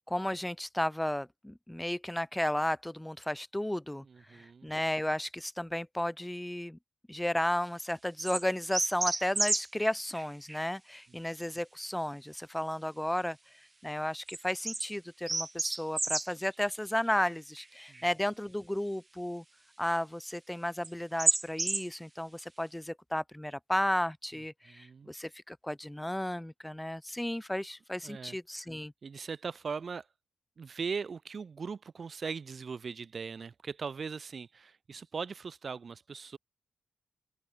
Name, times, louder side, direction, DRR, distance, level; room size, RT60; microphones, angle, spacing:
voice 1, 0.0-4.0 4.3-6.8 7.1-13.4 13.8-19.4 19.8-28.9, left 1 dB, 5° left, 1.7 m, -33 dB
voice 2, 4.1-4.7 17.9-18.0 24.7-25.1 28.0-28.4 29.0-30.1 30.6-36.4, right 5 dB, 50° right, 0.9 m, -39 dB
sound 1, 8.2-8.4 8.7-9.9 10.1-10.6 14.3-14.9 15.3-16.3 17.6-17.7 17.9-18.0 20.8-20.9 21.2-21.9, right 2 dB, 20° right, 0.8 m, -30 dB
open air
wide cardioid pair, 125°, 0 cm